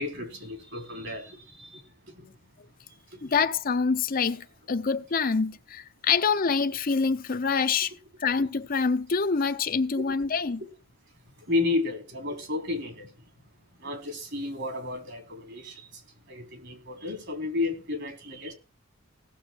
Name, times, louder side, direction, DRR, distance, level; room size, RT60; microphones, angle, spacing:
voice 1, 0.0-1.8 2.1-2.3 3.1-3.3 10.0-10.1 11.5-13.1 13.8-16.0 16.3-18.5, left 3 dB, 60° right, 3.7 m, -32 dB
voice 2, 3.2-7.9 8.2-10.6, left 5 dB, 45° left, 0.7 m, -26 dB
17.0 x 7.0 x 4.5 m
head